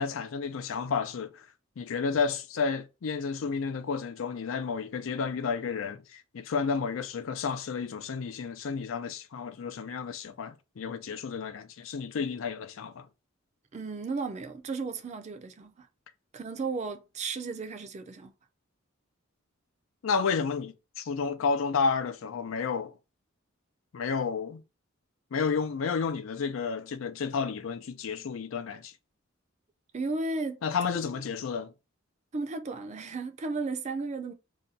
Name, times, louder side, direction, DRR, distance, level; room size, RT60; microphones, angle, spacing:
voice 1, 0.0-1.5 1.8-13.1 20.0-22.9 23.9-24.6 25.3-28.9 30.6-31.7, left 5 dB, 85° left, 0.4 m, -31 dB
voice 2, 13.7-15.9 16.3-18.3 29.9-30.6 32.3-34.3, right 3 dB, 35° right, 0.4 m, -34 dB
2.7 x 2.2 x 3.9 m
head